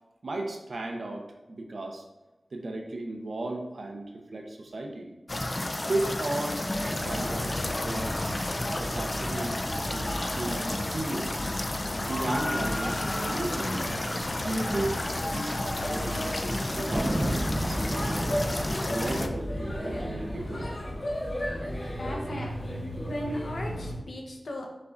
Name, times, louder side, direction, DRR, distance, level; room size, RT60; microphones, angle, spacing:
voice 1, 0.2-2.0 2.5-5.1 5.8-8.4 8.7-11.5 11.9-13.9 14.4-16.3 16.7-18.4 18.9-20.7, right 2 dB, 70° right, 2 dB, 0.8 m, -35 dB
sound 1, 5.3-19.3, left 1 dB, 35° left, 0.4 m, -32 dB
Male speech man speaking / Child speech kid speaking / Chatter, 6.7-24.0, equal, 60° left, 1.4 m, -36 dB
Thunder, 16.9-22.1, equal, 15° right, 0.7 m, -33 dB
voice 2, 22.0-24.7, left 1 dB, 75° left, 0 dB, 0.8 m, -37 dB
5.5 x 3.9 x 2.5 m, 1.1 s
wide cardioid pair, 75°, 0 cm